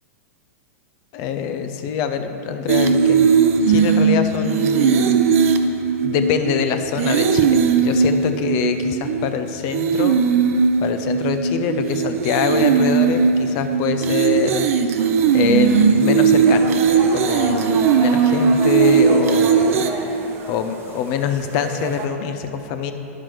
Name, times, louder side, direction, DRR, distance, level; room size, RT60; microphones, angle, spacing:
voice 1, 1.1-3.3 3.7-5.1 6.0-10.2 10.8-14.6 15.3-16.8 17.1-19.8 20.5-22.9, left 7 dB, 45° left, 8 dB, 0.6 m, -24 dB
sound 1, 2.7-9.3 9.7-19.9, right 6 dB, 65° right, 0.5 m, -18 dB
sound 2, 15.0-22.1, right 4 dB, 30° right, 0.9 m, -32 dB
10.0 x 6.0 x 4.6 m, 2.9 s
hypercardioid pair, 110°, 8 cm